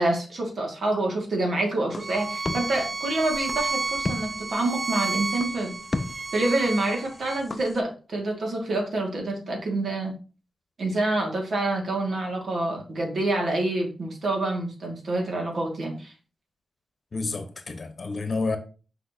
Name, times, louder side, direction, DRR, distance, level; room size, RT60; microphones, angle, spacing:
voice 1, 0.0-5.8 6.3-10.2 10.8-16.1, right 2 dB, 60° right, 2.1 m, -27 dB
sound 1, 1.9-7.8, left 2 dB, 25° left, 0.5 m, -36 dB
Bowed string instrument, 2.0-7.4, right 3 dB, 35° right, 0.3 m, -31 dB
voice 2, 17.1-18.6, left 3 dB, 45° left, 1.0 m, -29 dB
6.3 x 5.5 x 2.8 m
wide cardioid pair, 120°, 0 cm